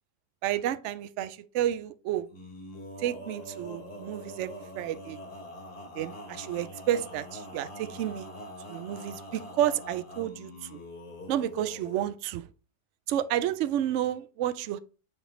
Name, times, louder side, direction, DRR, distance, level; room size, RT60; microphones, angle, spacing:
voice 1, 0.4-2.3 3.0-5.2 6.0-8.3 8.7-10.8 11.3-12.5 13.1-14.8, right 11 dB, 75° right, 0.6 m, -31 dB
Male singing, 2.3-12.1, left 1 dB, 40° left, 2.3 m, -44 dB
8.5 x 3.4 x 3.9 m
omnidirectional pair, 1.8 m